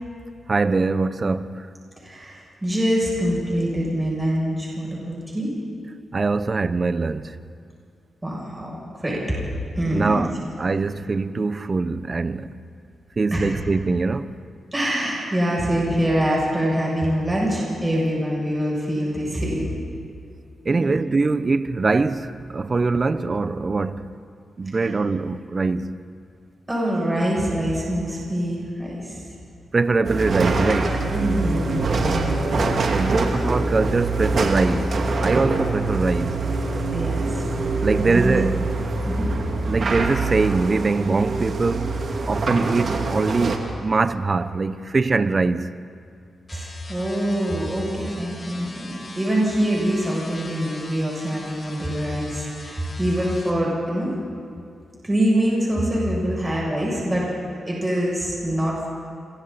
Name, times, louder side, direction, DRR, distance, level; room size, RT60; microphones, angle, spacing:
voice 1, 0.5-1.7 6.1-7.3 9.9-12.5 13.2-14.3 20.6-24.0 24.6-26.0 29.7-31.0 32.9-36.3 37.8-38.6 39.7-42.0 42.3-45.7, right 3 dB, 40° right, 0.9 m, -22 dB
voice 2, 2.0-5.5 8.2-9.2 9.8-10.3 13.3-13.5 14.7-19.7 20.7-20.9 24.8-24.9 26.7-29.2 31.1-32.4 33.4-33.5 36.9-37.5 38.0-38.4 39.0-39.3 46.5-54.1 55.0-57.3 57.6-58.9, equal, 20° right, 7.7 m, -24 dB
sound 1, 30.0-43.6, right 3 dB, 65° right, 2.5 m, -24 dB
sound 2, 46.5-53.5, left 2 dB, 40° left, 4.0 m, -41 dB
28.0 x 24.0 x 4.3 m
cardioid pair, 60°, 0 cm